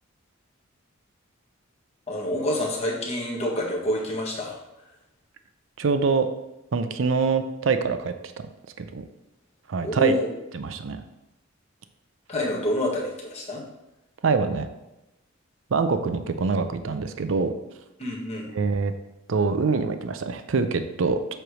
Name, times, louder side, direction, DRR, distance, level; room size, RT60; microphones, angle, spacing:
voice 1, 2.1-4.6 9.8-10.3 12.3-13.7 18.0-18.4, left 1 dB, 30° left, -2 dB, 1.6 m, -27 dB
voice 2, 5.8-6.3 6.7-8.5 8.8-9.0 9.7-10.1 10.5-11.0 14.2-14.7 15.7-17.5 18.5-18.9 19.3-21.2, right 4 dB, 70° right, 9 dB, 0.5 m, -24 dB
7.7 x 3.3 x 6.1 m, 0.95 s
head